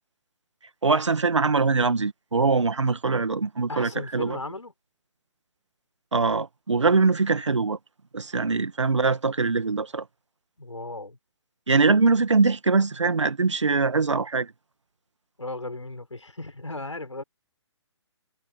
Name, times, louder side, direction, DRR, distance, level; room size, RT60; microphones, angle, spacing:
voice 1, 0.8-4.4 6.1-7.8 8.1-10.1 11.7-14.5, right 4 dB, 75° right, 1.9 m, -22 dB
voice 2, 3.7-4.7 10.6-11.2 15.4-17.2, left 2 dB, 85° left, 5.5 m, -36 dB
figure-of-eight pair, 135°, 15 cm